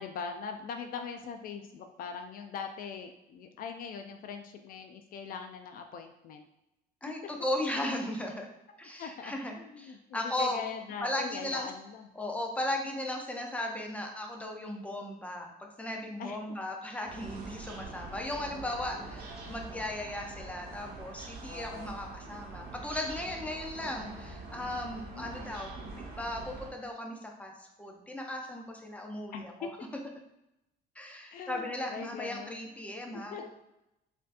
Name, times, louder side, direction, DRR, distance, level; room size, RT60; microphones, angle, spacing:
voice 1, 0.0-6.5 9.0-12.1 16.2-16.4 18.2-18.3 19.7-19.9 21.5-22.0 24.1-24.4 25.0-25.3 29.3-29.7 31.3-32.7 33.1-33.4, left 6 dB, 60° left, 5 dB, 0.4 m, -42 dB
voice 2, 7.0-8.5 8.8-10.6 11.0-11.7 12.2-25.8 26.2-29.7 31.0-33.4, left 1 dB, 10° left, 1 dB, 0.6 m, -36 dB
sound 1, 17.1-26.7, right 3 dB, 75° right, 1.1 m, -44 dB
4.2 x 2.7 x 2.5 m, 0.89 s
cardioid pair, 110°, 17 cm